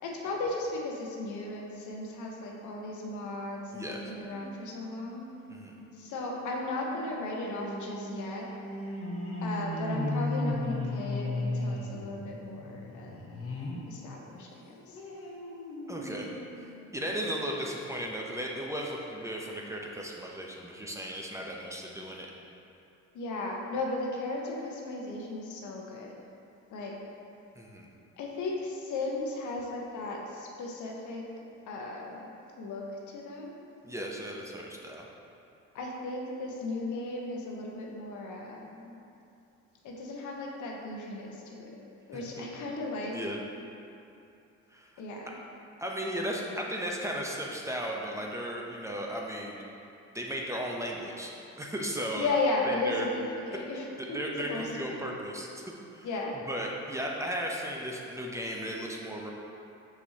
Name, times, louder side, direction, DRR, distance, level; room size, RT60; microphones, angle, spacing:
voice 1, 0.0-5.3 5.9-8.5 9.4-13.2 13.9-15.0 23.1-26.1 26.7-27.0 28.2-31.2 31.7-32.2 32.6-33.6 35.7-38.9 39.8-41.8 42.1-43.2 45.0-45.3 52.1-54.2 54.5-55.0 56.0-56.4, left 2 dB, 80° left, -1 dB, 1.0 m, -35 dB
voice 2, 3.7-4.1 5.5-5.8 15.9-16.4 16.9-22.3 27.5-27.9 33.8-35.1 42.1-42.5 43.1-43.4 44.7-44.9 45.8-49.6 50.1-52.3 52.7-53.1 54.0-55.6 55.9-56.1 56.5-59.3, equal, 10° right, -2 dB, 0.7 m, -36 dB
sound 1, 4.3-13.9 14.3-17.4 17.9-18.0 18.3-18.4, left 1 dB, 45° left, 1.0 m, -37 dB
6.3 x 5.7 x 2.8 m, 2.7 s
cardioid pair, 90°, 30 cm